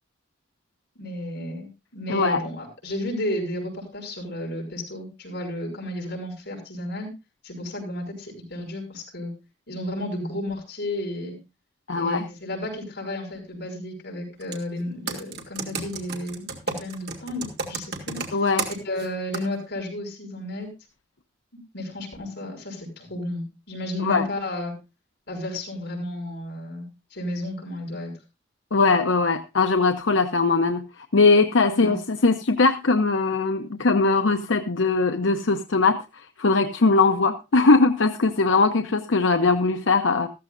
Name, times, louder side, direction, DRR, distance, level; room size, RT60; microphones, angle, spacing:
voice 1, 1.0-7.1 7.4-9.3 9.7-11.4 11.9-18.2 18.8-20.7 21.7-24.7 25.3-28.1 31.6-32.0, left 1 dB, 65° left, 0 dB, 5.9 m, -33 dB
voice 2, 2.1-2.4 11.9-12.2 18.3-18.7 24.0-24.2 28.7-40.3, left 3 dB, 85° left, 7 dB, 0.8 m, -20 dB
Computer keyboard, 14.4-14.6 15.1-19.1 19.3-19.5, right 4 dB, 60° right, 2.7 m, -31 dB
14.5 x 14.5 x 2.6 m, 0.27 s
head